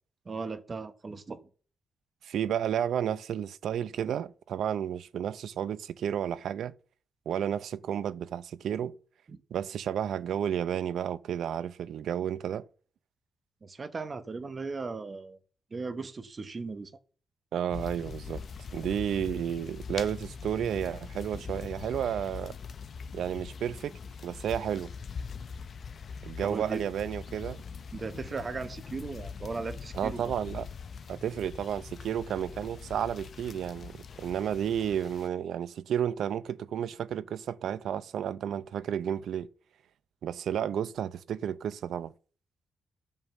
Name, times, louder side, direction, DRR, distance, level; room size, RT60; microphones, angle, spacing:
voice 1, 0.2-1.4 9.3-9.4 13.6-15.4 15.7-16.9 21.3-21.6 26.4-26.8 27.9-30.3, right 4 dB, 30° right, 0.9 m, -37 dB
voice 2, 2.2-6.7 7.3-8.9 9.5-12.6 17.5-18.4 18.7-22.6 23.1-23.9 24.2-24.9 26.2-27.6 29.9-30.7 31.1-39.5 40.2-42.1, right 9 dB, 70° right, 0.5 m, -32 dB
sound 1, 17.7-35.3, left 6 dB, 40° left, 0.6 m, -42 dB
11.0 x 5.5 x 7.3 m
wide cardioid pair, 155°, 0 cm